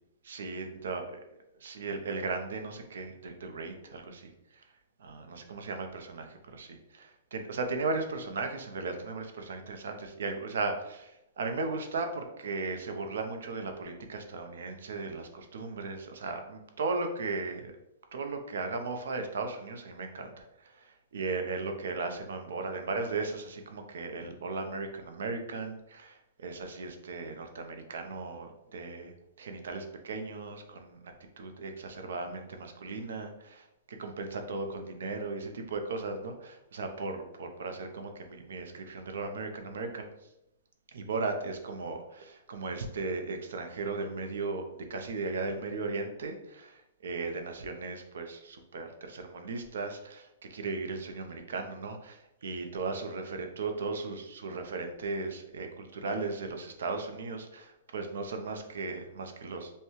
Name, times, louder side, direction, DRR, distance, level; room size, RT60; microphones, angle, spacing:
voice 1, 0.2-1.0 1.6-4.6 5.0-17.7 18.1-40.1 40.9-59.7, right 3 dB, 80° right, 5 dB, 0.7 m, -36 dB
5.5 x 2.3 x 3.1 m, 0.88 s
hypercardioid pair, 170°, 0 cm